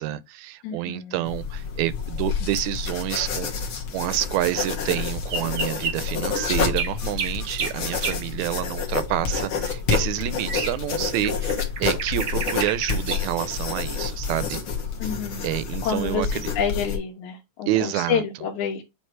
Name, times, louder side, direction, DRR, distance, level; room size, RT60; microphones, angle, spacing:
voice 1, 0.0-3.5 3.9-14.6 15.0-15.1 15.4-16.4 17.7-18.2, right 14 dB, 80° right, 1.8 m, -28 dB
voice 2, 0.6-1.2 15.0-15.5 15.8-18.8, left 7 dB, 75° left, 2.4 m, -28 dB
sound 1, 1.2-17.0, left 6 dB, 50° left, 1.8 m, -29 dB
sound 2, 5.3-8.2 9.6-11.0 11.2-14.6 15.8-15.9 16.4-16.5, right 6 dB, 60° right, 1.3 m, -31 dB
7.9 x 3.1 x 4.4 m
omnidirectional pair, 3.5 m